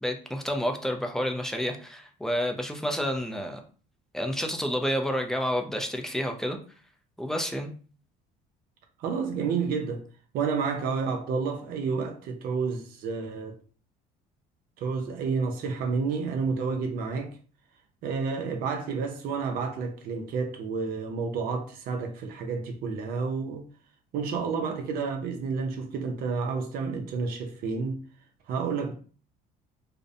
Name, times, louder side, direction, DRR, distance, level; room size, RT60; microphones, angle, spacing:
voice 1, 0.0-3.6 4.1-6.6 7.2-7.7, equal, 5° left, 0.4 m, -29 dB
voice 2, 9.0-10.0 10.3-13.5 14.8-17.4 18.0-23.6 24.1-28.0 28.5-28.9, right 5 dB, 65° right, 0.5 m, -30 dB
2.5 x 2.0 x 2.5 m
cardioid pair, 115°, 17 cm